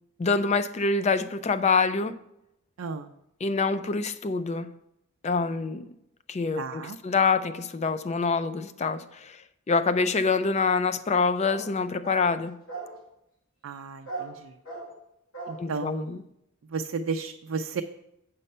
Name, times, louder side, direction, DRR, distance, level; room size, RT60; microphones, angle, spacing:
voice 1, 0.2-2.1 3.4-4.7 5.2-5.9 6.3-9.4 9.7-12.6 15.6-16.2, left 4 dB, 30° left, 0.4 m, -26 dB
voice 2, 6.6-7.0 13.6-14.5 15.5-16.2 16.7-17.8, right 4 dB, 70° right, 0.4 m, -33 dB
sound 1, 11.4-11.7 12.0-12.3 12.7-13.0 14.1-14.3 14.7-14.9 15.3-15.6, right 3 dB, 65° left, 2.5 m, -37 dB
8.2 x 5.5 x 5.4 m
head